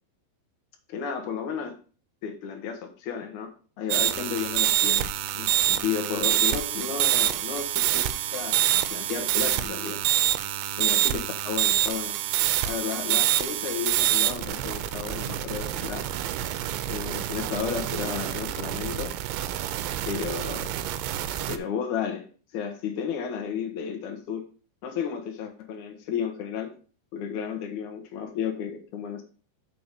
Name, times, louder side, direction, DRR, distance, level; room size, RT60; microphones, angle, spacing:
voice 1, 0.9-1.8 2.2-3.5 3.8-10.0 10.8-12.2 12.6-16.0 16.8-19.1 20.1-20.7 21.5-22.2 22.5-24.5 24.8-26.7 27.1-29.2, left 7 dB, 80° left, 3 dB, 1.7 m, -33 dB
sound 1, 3.9-21.6, right 12 dB, 85° right, 2.9 m, -26 dB
6.9 x 4.8 x 6.7 m, 0.38 s
omnidirectional pair, 5.4 m